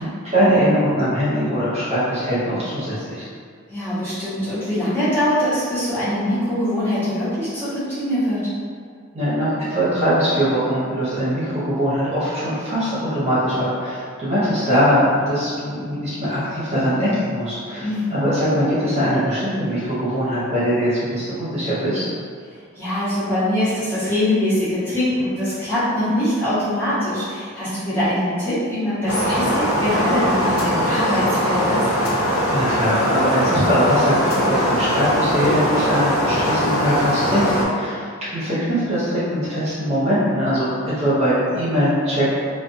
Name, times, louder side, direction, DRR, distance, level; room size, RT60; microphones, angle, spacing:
voice 1, 0.0-3.3 9.1-22.1 32.5-38.0 38.3-40.7 40.9-42.3, equal, 30° right, -11 dB, 0.9 m, -21 dB
voice 2, 3.7-8.5 17.8-18.2 22.7-31.9, left 1 dB, 10° left, -14 dB, 1.0 m, -23 dB
sound 1, 29.1-37.6, equal, 70° left, 0.4 m, -21 dB
2.4 x 2.3 x 2.5 m, 2.1 s
head